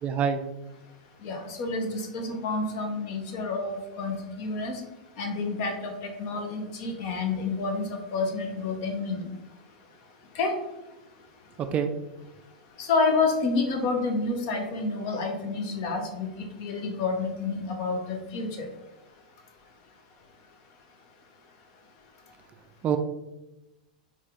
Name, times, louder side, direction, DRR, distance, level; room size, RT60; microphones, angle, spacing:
voice 1, 0.0-0.4 11.6-11.9 22.8-23.0, right 7 dB, 30° right, 7 dB, 0.3 m, -25 dB
voice 2, 1.2-4.8 5.2-5.9 6.2-9.2 10.4-10.5 12.8-18.7, left 3 dB, 50° left, 3 dB, 0.8 m, -29 dB
4.1 x 2.4 x 3.5 m, 1.0 s
figure-of-eight pair, 95°, 4 cm